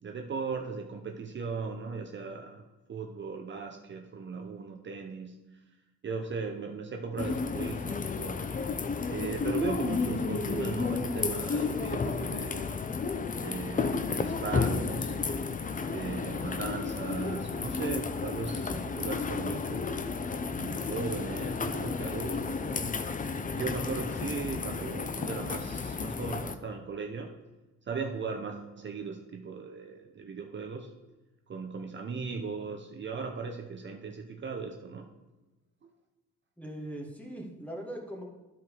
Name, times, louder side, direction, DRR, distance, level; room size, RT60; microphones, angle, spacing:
voice 1, 0.0-5.6 6.0-8.5 9.1-12.8 13.3-15.2 15.9-20.0 20.6-22.9 23.5-27.3 27.8-30.9 31.5-35.1 35.8-35.9, right 5 dB, 40° right, 3 dB, 0.8 m, -38 dB
sound 1, 7.2-26.6, left 4 dB, 25° left, 0.6 m, -32 dB
voice 2, 36.6-38.2, right 1 dB, 5° left, 0 dB, 2.0 m, -40 dB
12.0 x 4.6 x 4.9 m, 1.1 s
cardioid pair, 90°, 30 cm